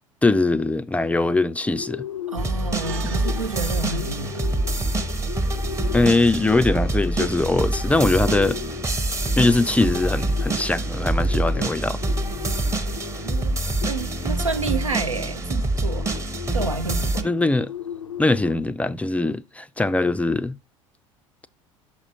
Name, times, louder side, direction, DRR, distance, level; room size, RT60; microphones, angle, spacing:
voice 1, 0.2-2.0 5.9-8.6 9.4-12.0 17.2-17.7 18.2-20.6, left 2 dB, 10° left, 0.3 m, -21 dB
Bird, 1.6-18.6, left 9 dB, 85° left, 0.4 m, -38 dB
voice 2, 2.3-4.6 13.2-16.1 16.5-17.3, right 4 dB, 85° right, 0.5 m, -30 dB
sound 1, 2.4-17.2, right 2 dB, 20° right, 0.8 m, -25 dB
sound 2, 2.8-7.5, right 7 dB, 65° right, 1.0 m, -45 dB
6.1 x 5.9 x 2.9 m
figure-of-eight pair, 65°, 16 cm